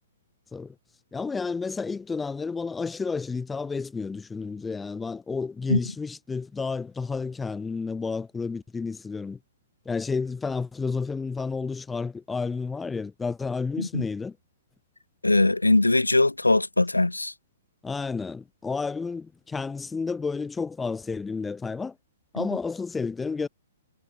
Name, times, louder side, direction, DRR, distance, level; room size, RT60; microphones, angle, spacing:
voice 1, 1.1-9.4 9.9-14.4 17.8-22.0 22.3-23.5, left 4 dB, 10° left, 0.3 m, -31 dB
voice 2, 15.2-17.3 22.4-22.5, left 2 dB, 85° left, 0.5 m, -21 dB
figure-of-eight pair, 115°, 0 cm